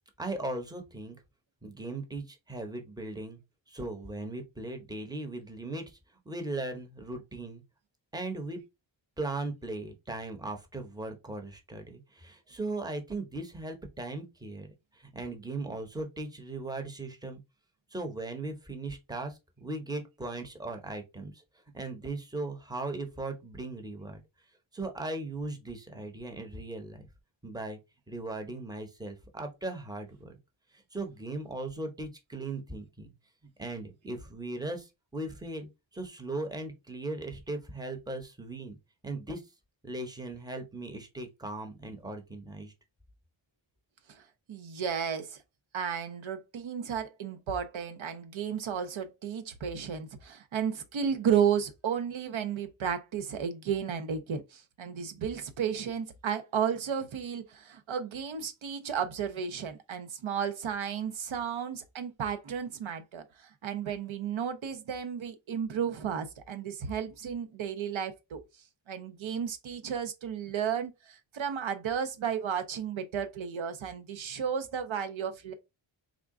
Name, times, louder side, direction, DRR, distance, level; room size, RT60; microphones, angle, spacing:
voice 1, 0.2-1.2 1.6-3.4 3.7-6.0 6.3-7.6 8.1-8.6 9.2-14.7 14.9-17.4 17.9-21.4 21.7-24.2 24.7-27.1 27.4-27.8 28.1-30.3 30.7-33.1 33.6-38.8 39.0-39.4 39.8-42.7, right 2 dB, 10° right, 0.7 m, -38 dB
voice 2, 44.5-45.4 45.7-68.4 68.9-75.5, right 8 dB, 85° right, 0.7 m, -33 dB
3.6 x 2.3 x 3.6 m
wide cardioid pair, 100°, 46 cm